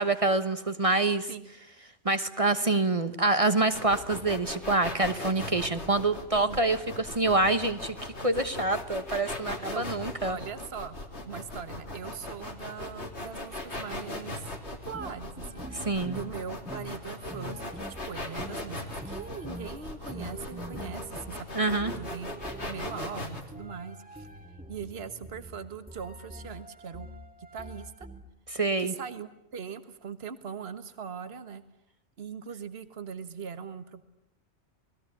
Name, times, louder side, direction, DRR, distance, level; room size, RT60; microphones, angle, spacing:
voice 1, 0.0-1.3 2.0-10.4 15.7-16.2 21.5-21.9 28.5-28.9, right 2 dB, 30° right, 10 dB, 1.2 m, -26 dB
sound 1, 3.7-23.4, left 2 dB, 70° left, 3.4 m, -39 dB
voice 2, 10.3-11.0 11.2-22.3 22.6-24.3 24.7-27.1 27.4-28.1 28.8-31.6 32.2-34.0, right 7 dB, 60° right, 11 dB, 1.6 m, -41 dB
sound 2, 14.8-28.2, equal, 5° right, 2.2 m, -44 dB
28.5 x 20.5 x 9.7 m, 0.79 s
omnidirectional pair, 1.2 m